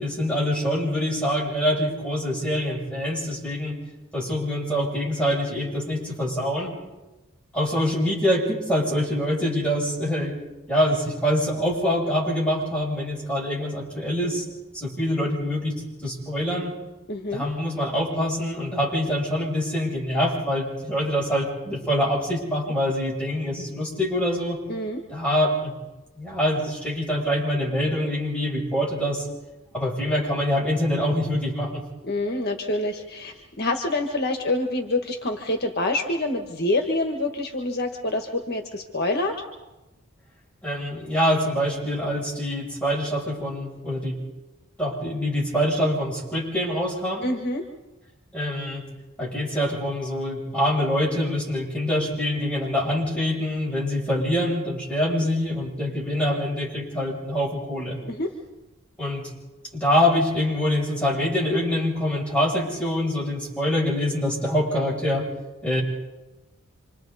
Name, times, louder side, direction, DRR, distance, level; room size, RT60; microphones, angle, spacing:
voice 1, 0.0-3.7 4.1-6.7 7.5-10.3 10.7-14.4 14.7-15.7 16.0-16.7 17.3-24.6 25.1-25.7 26.1-29.3 29.7-31.8 40.6-44.1 44.8-47.3 48.3-48.8 49.2-58.0 59.0-59.3 59.7-65.3 65.6-65.8, equal, 5° left, -4 dB, 7.8 m, -25 dB
voice 2, 17.1-17.4 24.7-25.0 32.0-39.4 47.2-47.6 58.1-58.3, left 2 dB, 50° left, 4 dB, 1.6 m, -26 dB
27.5 x 26.5 x 4.2 m, 1.1 s
head